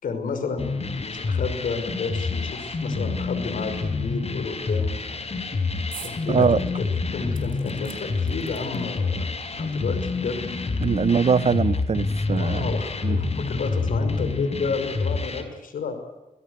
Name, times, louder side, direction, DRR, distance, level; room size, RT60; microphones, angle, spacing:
voice 1, 0.0-5.0 6.0-10.4 12.3-16.2, left 4 dB, 80° left, 5.7 m, -31 dB
sound 1, 0.6-15.4, left 4 dB, 50° left, 4.6 m, -28 dB
sound 2, 5.9-6.2 6.6-6.7 7.3-9.0 9.9-10.0 10.2-10.3, right 9 dB, 90° right, 4.3 m, -44 dB
voice 2, 6.3-6.6 10.8-12.6 13.0-13.2, right 6 dB, 50° right, 0.9 m, -22 dB
27.0 x 17.5 x 8.2 m
cardioid pair, 65°, 14 cm